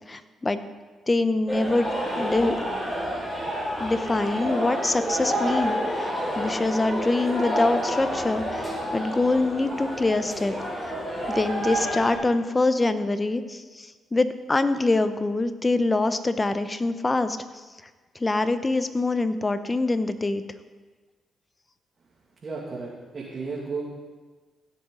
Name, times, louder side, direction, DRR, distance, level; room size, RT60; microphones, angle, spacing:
voice 1, 0.1-0.6 1.1-1.9 2.2-2.6 3.8-10.5 10.8-10.9 11.3-17.4 18.2-20.4, left 2 dB, 25° left, 11 dB, 0.8 m, -24 dB
sound 1, 1.5-12.2, equal, 5° left, 4.1 m, -29 dB
voice 2, 22.4-23.8, right 4 dB, 45° right, -5 dB, 2.2 m, -33 dB
16.0 x 7.2 x 3.9 m, 1.3 s
supercardioid pair, 65°, 0 cm